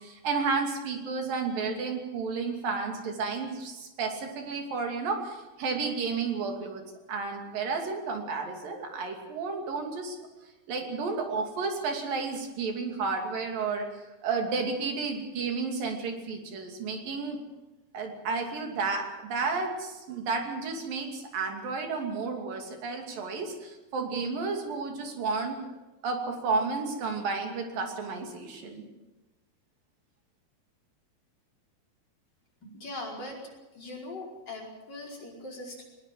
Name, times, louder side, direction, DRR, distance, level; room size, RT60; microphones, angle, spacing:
voice 1, 0.0-6.8 7.1-10.2 10.7-13.9 14.2-17.4 17.9-25.6 26.0-28.9, right 4 dB, 65° right, 3 dB, 4.4 m, -32 dB
voice 2, 32.6-33.4 33.8-35.8, left 2 dB, 25° left, -2 dB, 5.5 m, -40 dB
20.5 x 20.5 x 7.6 m, 1.1 s
omnidirectional pair, 4.3 m